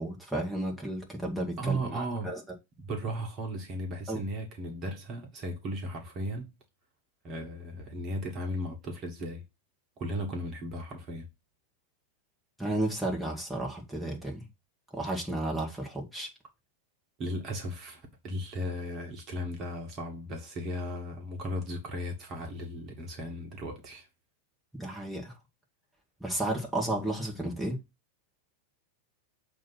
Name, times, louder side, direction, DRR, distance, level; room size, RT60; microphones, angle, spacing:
voice 1, 0.0-2.4 4.1-4.2 12.6-14.4 14.9-16.3 24.7-25.3 26.2-27.8, right 1 dB, ahead, 2.1 m, -33 dB
voice 2, 1.6-2.3 2.8-6.5 7.2-9.4 10.0-11.3 17.2-24.1, equal, 35° right, 1.7 m, -36 dB
7.2 x 3.1 x 5.9 m
figure-of-eight pair, 90°, 0 cm